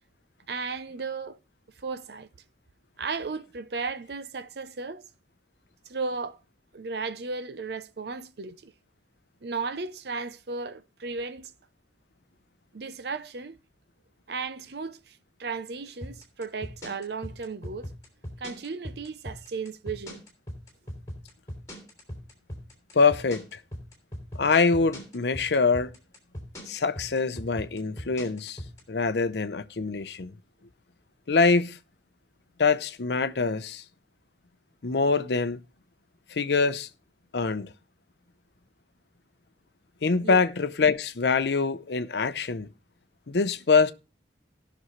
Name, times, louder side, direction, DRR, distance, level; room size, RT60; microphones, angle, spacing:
voice 1, 0.5-1.4 1.7-2.3 3.0-5.0 5.9-6.4 6.7-8.7 9.4-11.5 12.7-13.6 14.3-17.9 18.4-20.2 40.2-40.5, right 4 dB, 65° right, 0.6 m, -35 dB
sound 1, 16.0-28.8, equal, 15° left, 3.1 m, -39 dB
voice 2, 22.9-23.4 24.4-25.9 26.7-28.6 28.9-30.3 31.3-31.8 32.6-33.8 34.8-35.6 36.3-36.9 37.3-37.7 40.0-42.7 43.3-43.9, left 4 dB, 70° left, 0.7 m, -24 dB
18.5 x 6.2 x 3.1 m
head